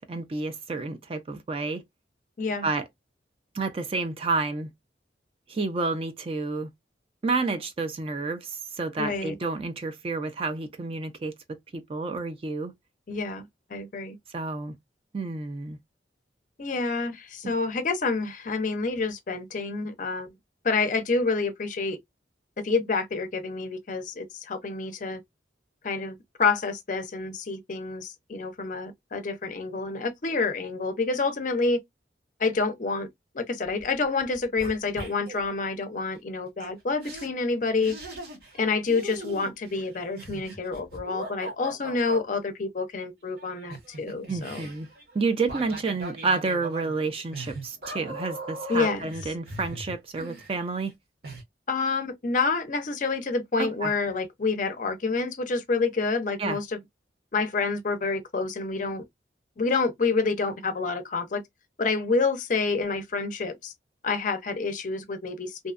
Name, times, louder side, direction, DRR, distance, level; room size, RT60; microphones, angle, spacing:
voice 1, 0.1-1.8 2.6-2.9 3.5-4.7 5.5-6.7 7.2-11.3 11.7-12.7 14.3-14.8 15.1-15.8 17.4-17.5 44.3-44.9 45.1-50.9 53.6-53.9 56.4-56.6, right 3 dB, 30° right, 0.3 m, -30 dB
voice 2, 9.0-9.3 13.1-14.2 16.6-20.3 20.6-22.0 22.6-25.2 25.8-31.8 32.4-33.1 33.3-37.9 38.6-44.7 48.7-49.1 51.7-56.8 57.3-59.0 59.6-61.4 61.8-63.7 64.0-65.7, left 4 dB, 45° left, 0.5 m, -28 dB
sound 1, 33.6-33.9 34.2-35.4 36.6-36.7 37.0-37.3 37.8-38.6 38.9-42.2 43.4-50.9 51.2-51.4, right 1 dB, 55° right, 0.8 m, -40 dB
2.6 x 2.1 x 2.4 m
head